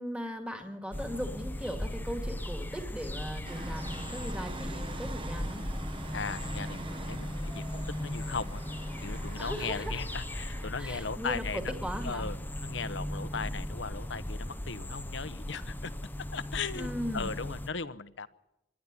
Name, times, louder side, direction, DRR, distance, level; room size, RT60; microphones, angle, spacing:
voice 1, 0.0-5.6 9.4-10.0 10.8-12.3 16.8-17.3, equal, 5° right, 4 dB, 2.1 m, -38 dB
sound 1, 0.9-17.7, left 1 dB, 10° left, 0.7 m, -37 dB
sound 2, 3.4-10.7, right 2 dB, 30° right, 0.9 m, -44 dB
voice 2, 6.1-8.6 9.0-11.7 12.0-12.4 12.6-15.9 16.2-18.3, left 5 dB, 75° left, 13 dB, 1.0 m, -37 dB
25.5 x 11.0 x 9.7 m, 0.91 s
head